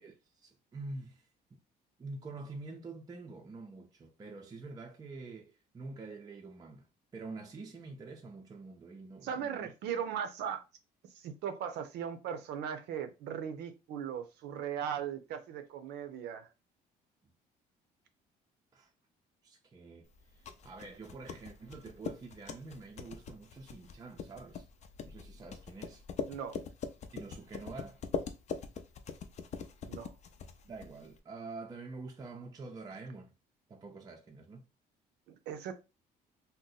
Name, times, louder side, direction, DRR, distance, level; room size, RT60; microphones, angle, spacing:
voice 1, 0.0-1.6 2.0-6.9 7.1-9.7 18.7-18.9 19.4-24.7 25.0-26.0 27.1-28.0 30.6-33.3 33.7-34.6, right 3 dB, 20° right, 0.5 m, -47 dB
voice 2, 9.2-10.6 11.1-16.5 26.3-26.6 29.8-30.1 35.3-35.7, right 8 dB, 80° right, 0.6 m, -38 dB
sound 1, 20.1-31.2, left 6 dB, 45° left, 0.5 m, -42 dB
2.7 x 2.1 x 3.9 m
cardioid pair, 110°, 17 cm